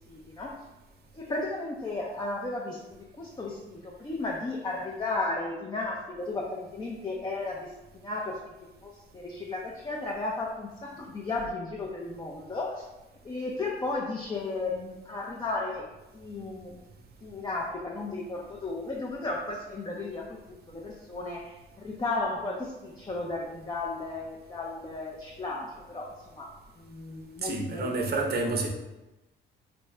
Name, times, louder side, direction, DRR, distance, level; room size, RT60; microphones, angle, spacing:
voice 1, 0.1-0.6 1.1-8.4 8.8-12.8 13.2-15.9 16.1-16.8 17.2-26.5 26.8-27.9, left 2 dB, 20° left, -2 dB, 0.5 m, -34 dB
voice 2, 27.4-28.7, right 2 dB, 50° right, 2 dB, 0.7 m, -29 dB
3.3 x 2.6 x 3.1 m, 1.0 s
cardioid pair, 75°, 21 cm